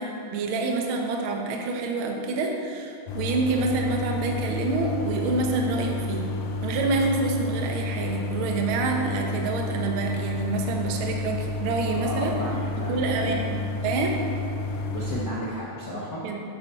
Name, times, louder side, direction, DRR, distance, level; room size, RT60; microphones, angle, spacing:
voice 1, 0.0-6.3 6.6-12.4 12.8-14.2 16.2-16.4, right 3 dB, 65° right, 1 dB, 1.3 m, -27 dB
sound 1, 3.1-15.3, left 3 dB, 75° left, 2.3 m, -31 dB
voice 2, 11.9-13.4 14.9-16.3, equal, 60° left, -6 dB, 1.2 m, -33 dB
11.0 x 9.4 x 4.3 m, 2.5 s
omnidirectional pair, 3.8 m